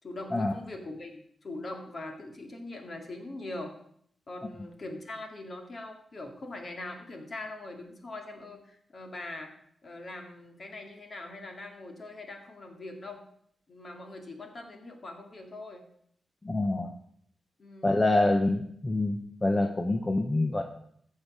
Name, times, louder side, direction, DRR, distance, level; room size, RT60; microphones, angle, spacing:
voice 1, 0.0-1.1 1.4-3.7 4.3-9.5 9.8-13.2 13.7-15.8 17.6-18.0, left 2 dB, 40° left, 3 dB, 2.3 m, -42 dB
voice 2, 16.4-16.9 17.8-20.6, left 2 dB, 20° left, 5 dB, 0.9 m, -26 dB
14.5 x 6.6 x 6.2 m, 0.67 s
wide cardioid pair, 130°, 0 cm